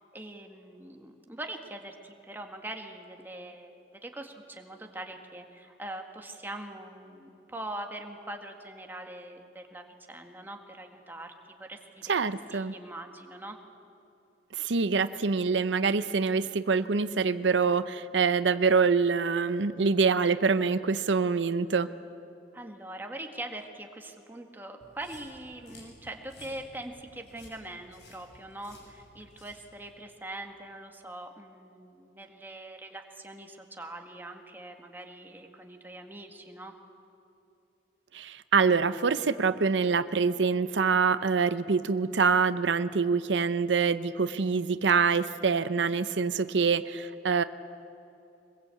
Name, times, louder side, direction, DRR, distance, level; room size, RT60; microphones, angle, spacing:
voice 1, 0.1-13.6 22.5-36.7, right 1 dB, 10° right, 3 dB, 1.8 m, -42 dB
voice 2, 12.1-12.7 14.5-21.9 38.1-47.4, right 5 dB, 90° right, 13 dB, 0.7 m, -25 dB
sound 1, 24.8-29.9, left 1 dB, 75° left, 7.0 m, -55 dB
23.5 x 21.5 x 8.4 m, 2.8 s
head